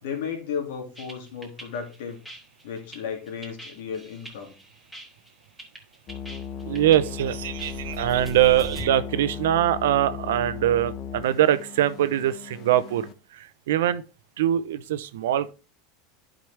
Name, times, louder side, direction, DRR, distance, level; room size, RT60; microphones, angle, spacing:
voice 1, 0.0-2.2 2.6-4.5, left 7 dB, 80° left, 2.3 m, -34 dB
sound 1, 1.0-8.8, right 4 dB, ahead, 2.1 m, -42 dB
sound 2, 6.1-13.1, left 7 dB, 45° left, 0.8 m, -37 dB
voice 2, 6.6-14.0 14.4-15.5, right 12 dB, 90° right, 0.7 m, -23 dB
11.0 x 5.1 x 3.4 m
supercardioid pair, 130°, 0 cm